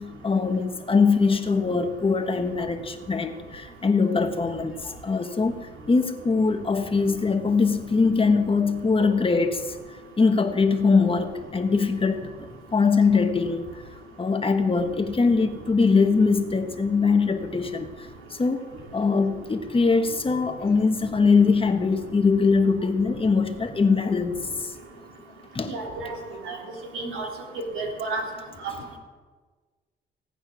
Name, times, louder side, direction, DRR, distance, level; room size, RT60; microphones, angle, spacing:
voice 1, 0.0-9.6 10.2-13.6 14.2-17.9 18.3-18.6 18.9-24.3 25.5-25.8, left 4 dB, 25° left, 6 dB, 1.3 m, -22 dB
voice 2, 25.6-26.1 26.4-26.6 26.9-27.3 27.7-28.2 28.6-28.7, right 3 dB, 85° right, 0 dB, 3.3 m, -31 dB
18.0 x 8.8 x 6.2 m, 1.4 s
cardioid pair, 90°, 20 cm